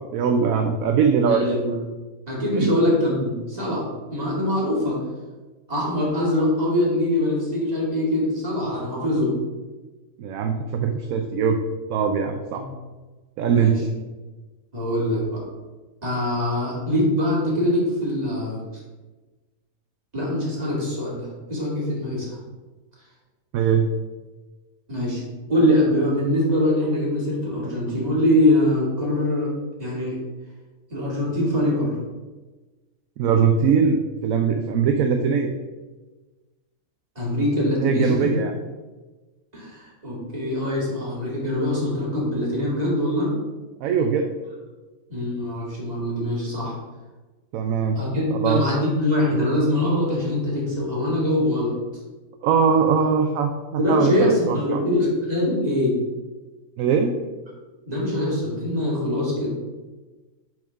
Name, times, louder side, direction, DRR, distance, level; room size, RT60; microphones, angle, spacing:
voice 1, 0.0-1.4 2.5-2.7 10.2-11.6 11.9-12.6 13.4-13.9 23.5-23.9 33.2-35.5 37.8-38.5 43.8-44.3 47.5-48.0 48.3-48.6 52.4-54.8 56.8-57.1, right 6 dB, 70° right, 5 dB, 0.9 m, -21 dB
voice 2, 1.2-1.7 2.3-5.0 5.7-9.4 12.5-12.6 13.5-13.8 14.7-15.4 16.0-18.6 20.1-22.4 24.9-25.2 25.5-29.5 29.8-30.2 30.9-31.9 37.2-38.3 39.5-43.3 45.1-46.8 48.0-51.7 53.8-56.0 57.9-59.5, left 1 dB, 25° right, -5 dB, 2.1 m, -23 dB
6.1 x 3.6 x 5.7 m, 1.2 s
omnidirectional pair, 1.6 m